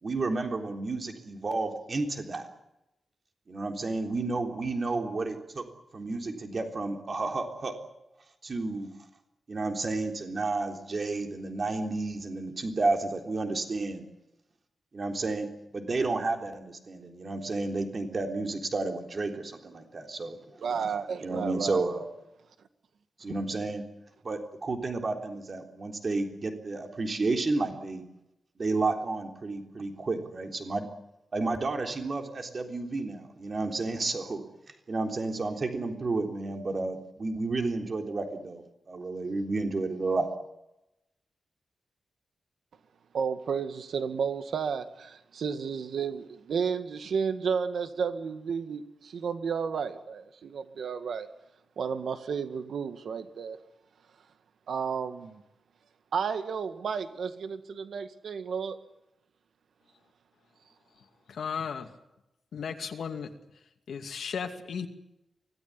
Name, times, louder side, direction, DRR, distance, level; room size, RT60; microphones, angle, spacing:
voice 1, 0.0-2.5 3.5-5.6 5.9-7.7 8.4-8.9 9.5-14.1 14.9-20.4 20.7-20.8 21.2-22.1 23.2-23.8 24.2-28.0 28.6-30.9 31.3-34.4 34.9-40.3, right 3 dB, 40° right, 3.6 m, -31 dB
voice 2, 20.6-21.8 43.1-51.3 51.8-53.6 54.7-55.4 56.1-58.8, right 6 dB, 80° right, 1.8 m, -32 dB
voice 3, 61.3-61.9 62.5-63.3 63.9-64.9, left 6 dB, 85° left, 2.4 m, -35 dB
24.5 x 18.0 x 9.8 m
wide cardioid pair, 145°, 0 cm